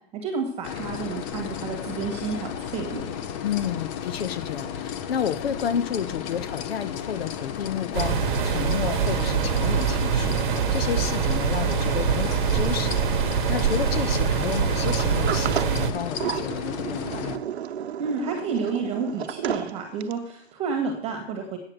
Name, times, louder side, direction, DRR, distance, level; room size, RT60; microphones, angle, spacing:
voice 1, 0.1-3.0 18.0-21.6, right 5 dB, 20° right, 4 dB, 1.7 m, -30 dB
sound 1, 0.6-17.4, left 8 dB, 15° left, 0.4 m, -34 dB
voice 2, 3.4-17.4, left 8 dB, 70° left, 13 dB, 1.2 m, -31 dB
sound 2, 7.9-15.9, right 7 dB, 50° right, 1.1 m, -24 dB
Sliding door, 14.9-20.3, right 9 dB, 80° right, 0.8 m, -32 dB
8.8 x 7.4 x 8.0 m, 0.66 s
hypercardioid pair, 150°, 32 cm